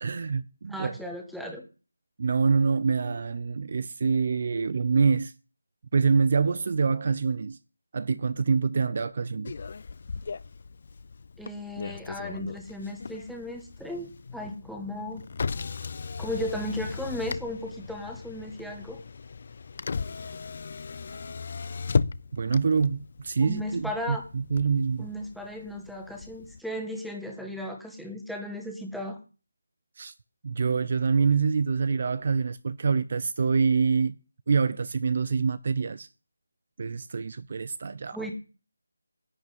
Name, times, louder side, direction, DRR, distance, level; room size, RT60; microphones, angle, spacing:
voice 1, 0.0-1.0 2.2-5.3 5.9-7.6 7.9-9.5 22.3-25.1 30.0-30.1 30.4-34.2 34.5-36.1 36.8-38.2, right 5 dB, 40° right, 0.5 m, -25 dB
voice 2, 0.7-1.6 11.4-15.2 16.2-19.0 23.4-24.2 25.0-29.2 38.1-38.3, left 1 dB, ahead, 1.3 m, -36 dB
Motor vehicle (road), 9.4-26.6, left 5 dB, 40° left, 0.5 m, -36 dB
11.0 x 5.9 x 9.1 m
figure-of-eight pair, 170°, 0 cm